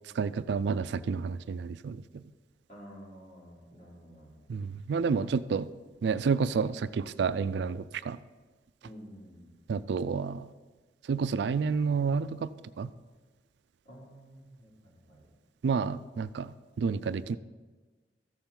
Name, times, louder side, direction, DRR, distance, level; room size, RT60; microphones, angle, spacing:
voice 1, 0.2-2.0 4.5-5.7 6.0-8.2 9.7-10.5 11.1-12.5 12.8-12.9 15.6-16.5 16.8-17.4, right 5 dB, 65° right, 14 dB, 0.3 m, -29 dB
voice 2, 2.7-4.4 8.8-9.6 13.9-15.3, equal, 40° left, -5 dB, 3.4 m, -50 dB
14.0 x 7.1 x 3.8 m, 1.4 s
head